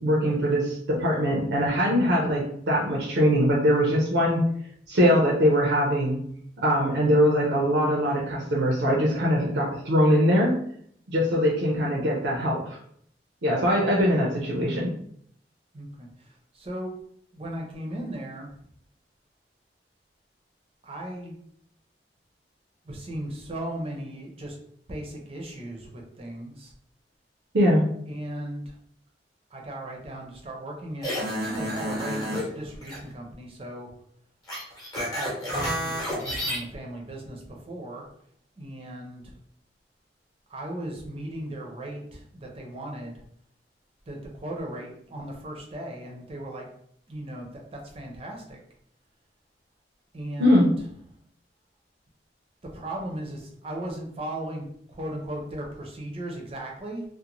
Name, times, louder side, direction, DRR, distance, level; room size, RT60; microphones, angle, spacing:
voice 1, 0.0-4.4 4.9-6.2 6.6-10.6 11.1-12.8 13.4-14.9 27.5-27.8 50.4-50.6, equal, 85° right, -3 dB, 0.5 m, -22 dB
voice 2, 15.7-16.1 16.5-17.0 17.3-18.5 20.8-21.4 22.8-24.6 24.9-26.7 28.0-28.7 29.5-31.3 31.6-33.9 35.1-38.1 38.6-39.3 40.5-43.2 44.1-46.7 47.1-48.6 50.1-51.0 52.6-57.0, right 1 dB, 35° right, 0 dB, 0.6 m, -37 dB
sound 1, 31.0-32.5 32.8-33.0 34.5-36.6, equal, 20° left, 0.9 m, -30 dB
2.5 x 2.1 x 2.9 m, 0.67 s
head